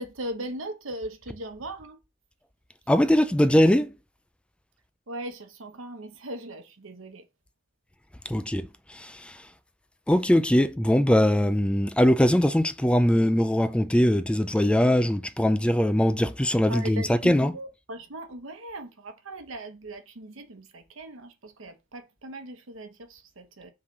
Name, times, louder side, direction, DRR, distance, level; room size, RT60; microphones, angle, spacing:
voice 1, 0.0-2.0 5.1-7.3 16.7-23.7, right 1 dB, 90° right, 1.0 m, -39 dB
voice 2, 2.9-3.9 8.3-9.5 10.1-17.5, equal, 5° left, 0.3 m, -21 dB
5.8 x 3.3 x 5.3 m
head